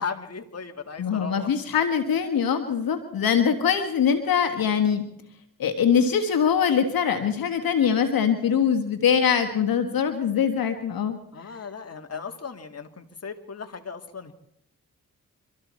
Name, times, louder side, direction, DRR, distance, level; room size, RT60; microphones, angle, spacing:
voice 1, 0.0-1.5 11.3-14.3, left 5 dB, 45° left, 5 dB, 1.9 m, -36 dB
voice 2, 1.0-5.0 5.6-11.2, left 7 dB, 75° left, 6 dB, 1.5 m, -23 dB
24.5 x 13.5 x 4.3 m, 0.72 s
supercardioid pair, 50°, 35 cm